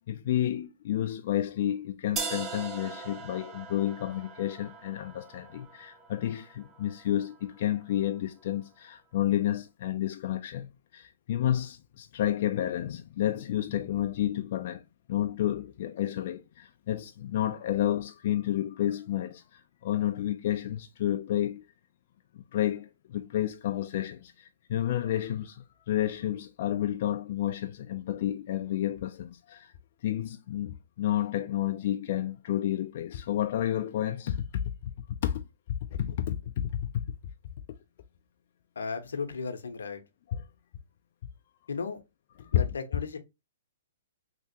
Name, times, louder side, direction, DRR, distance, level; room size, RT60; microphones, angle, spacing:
voice 1, 0.1-14.8 15.1-21.6 22.4-29.7 30.0-35.4 35.7-37.0 40.3-40.4 42.4-42.7, left 12 dB, 50° left, 0.3 m, -30 dB
sound 1, 2.2-8.1, right 5 dB, 20° right, 0.6 m, -41 dB
voice 2, 38.8-40.0 41.7-42.0 42.4-43.2, left 5 dB, 85° left, 0.8 m, -35 dB
3.3 x 2.8 x 2.7 m
hypercardioid pair, 145°, 0 cm